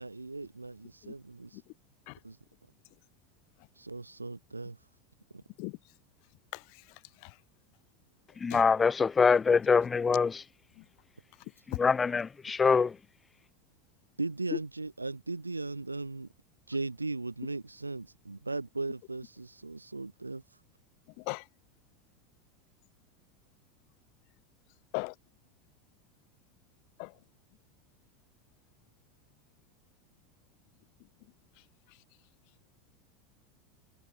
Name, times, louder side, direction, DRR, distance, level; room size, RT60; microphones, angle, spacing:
voice 1, 0.0-1.6 2.2-2.4 3.8-4.8 5.3-5.4 14.2-16.3 16.7-20.4, right 3 dB, 85° right, 6.2 m, -37 dB
voice 2, 1.0-1.1 2.1-2.2 5.6-5.7 6.5-6.6 8.5-8.6 21.3-21.4 24.9-25.1 27.0-27.1, left 40 dB or more, 55° left, 1.2 m, -36 dB
voice 3, 8.4-10.4 11.7-12.9, left 5 dB, 20° left, 0.9 m, -24 dB
figure-of-eight pair, 80°, 0 cm